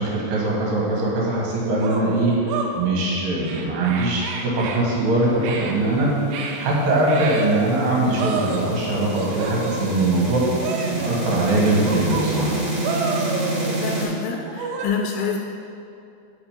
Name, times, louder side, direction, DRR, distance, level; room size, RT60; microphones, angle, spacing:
voice 1, 0.0-10.4 10.8-12.6, right 2 dB, 55° right, -4 dB, 2.9 m, -22 dB
sound 1, 1.0-1.1 1.8-2.7 3.4-4.8 5.4-5.8 6.3-6.6 7.1-7.6 8.2-8.8 9.1-10.2 10.6-11.2 11.8-12.5 12.8-13.9 14.4-14.9, right 5 dB, 90° right, 3.3 m, -30 dB
sound 2, 5.9-14.0, right 1 dB, 40° right, 2.1 m, -28 dB
voice 2, 13.8-15.4, left 6 dB, 80° left, 1 dB, 2.7 m, -27 dB
8.9 x 6.1 x 5.2 m, 2.7 s
omnidirectional pair, 5.3 m